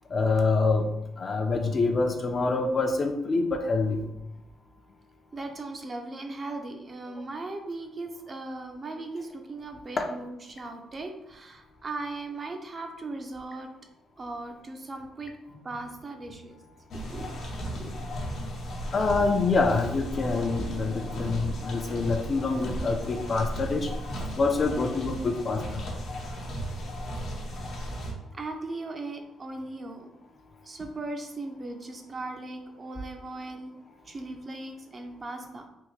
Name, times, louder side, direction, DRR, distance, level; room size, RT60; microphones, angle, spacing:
voice 1, 0.1-0.9 1.2-4.0 10.0-10.1 17.7-17.8 18.9-23.9 24.4-25.8, left 3 dB, 40° left, 4 dB, 0.5 m, -26 dB
voice 2, 5.3-13.7 14.2-15.4 15.6-16.6 17.1-17.3 17.7-18.0 26.9-27.0 28.3-30.1 30.6-33.7 34.0-35.7, right 2 dB, 35° right, 4 dB, 0.5 m, -38 dB
sound 1, 16.9-28.1, equal, 70° left, 0.9 m, -35 dB
3.5 x 2.6 x 3.1 m, 0.88 s
cardioid pair, 90°, 0 cm